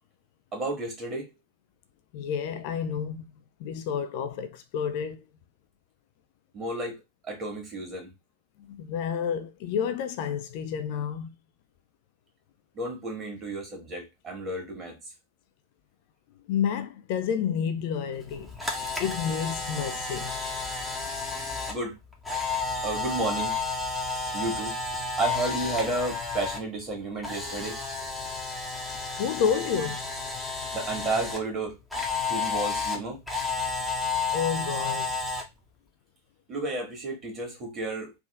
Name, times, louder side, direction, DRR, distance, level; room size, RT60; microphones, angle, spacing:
voice 1, 0.5-1.3 6.5-7.0 7.2-8.1 12.7-15.0 21.7-22.0 22.8-23.6 24.3-24.8 25.2-27.8 30.7-31.8 32.3-33.2 36.5-38.1, right 2 dB, 30° right, 1.8 m, -32 dB
voice 2, 2.1-3.3 3.6-5.2 8.7-11.3 16.5-18.5 19.0-20.4 29.2-30.0 34.3-35.2, left 7 dB, 45° left, 0.4 m, -30 dB
Camera, 18.2-26.6 26.9-31.4 31.9-35.4, left 4 dB, ahead, 1.0 m, -31 dB
3.5 x 2.5 x 3.4 m
figure-of-eight pair, 90°, 0 cm